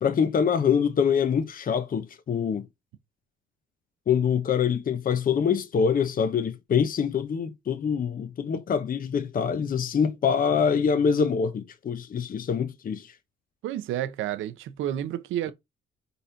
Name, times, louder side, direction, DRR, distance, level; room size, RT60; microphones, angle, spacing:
voice 1, 0.0-2.7 4.1-13.1, left 7 dB, 45° left, 0.9 m, -25 dB
voice 2, 13.6-15.5, right 12 dB, 90° right, 0.9 m, -30 dB
5.5 x 4.3 x 5.6 m
cardioid pair, 90°, 20 cm